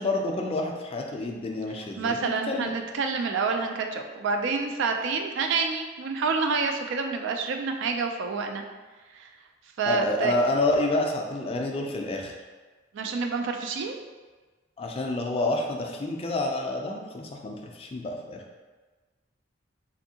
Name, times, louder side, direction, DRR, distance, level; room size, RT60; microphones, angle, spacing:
voice 1, 0.0-2.7 9.9-12.3 14.8-18.4, left 2 dB, 30° left, 1 dB, 0.3 m, -28 dB
voice 2, 2.0-8.6 9.1-9.3 9.8-10.4 12.9-14.0, right 4 dB, 65° right, 4 dB, 0.3 m, -28 dB
3.4 x 2.6 x 2.7 m, 1.3 s
head